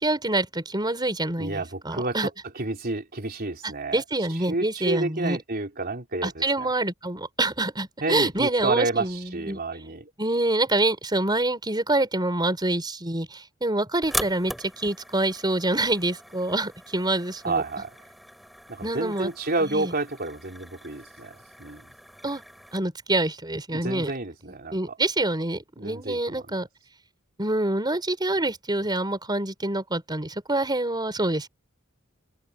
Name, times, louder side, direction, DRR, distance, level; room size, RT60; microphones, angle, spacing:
voice 1, 0.0-2.3 3.9-5.4 6.2-9.9 10.2-17.6 18.8-19.3 19.6-19.9 22.2-22.4 22.7-24.1 24.7-26.7 27.4-31.5, right 2 dB, 20° right, 4.7 m, -26 dB
voice 2, 1.4-2.3 2.6-4.0 4.3-6.7 8.0-10.1 17.4-17.9 18.7-21.8 23.7-25.0 25.8-26.6, right 2 dB, 50° right, 3.5 m, -30 dB
sound 1, 14.0-22.8, equal, ahead, 7.6 m, -40 dB
open air
head